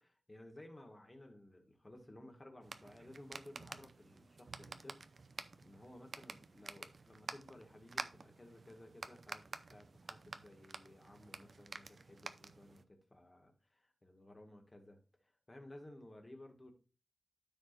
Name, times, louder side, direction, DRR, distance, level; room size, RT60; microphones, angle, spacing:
voice 1, 0.0-16.7, left 1 dB, 25° left, 3 dB, 1.9 m, -57 dB
sound 1, 2.6-12.8, right 4 dB, 60° right, 0.6 m, -50 dB
13.0 x 4.9 x 2.6 m, 0.35 s
wide cardioid pair, 105°, 0 cm